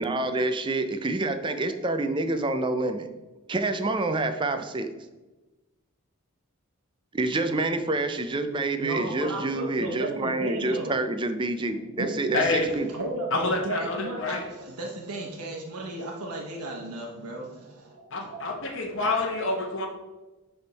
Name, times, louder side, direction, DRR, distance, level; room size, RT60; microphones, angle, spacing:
voice 1, 0.0-3.1 3.5-4.9 7.1-12.9, right 2 dB, 20° right, 8 dB, 0.4 m, -27 dB
voice 2, 1.3-1.8 8.8-11.0 11.7-12.1 12.9-18.4, right 2 dB, 90° right, -1 dB, 0.9 m, -35 dB
voice 3, 12.3-12.7 13.3-14.4 18.1-19.9, left 3 dB, 55° left, 0 dB, 1.0 m, -27 dB
9.8 x 3.5 x 4.0 m, 1.1 s
head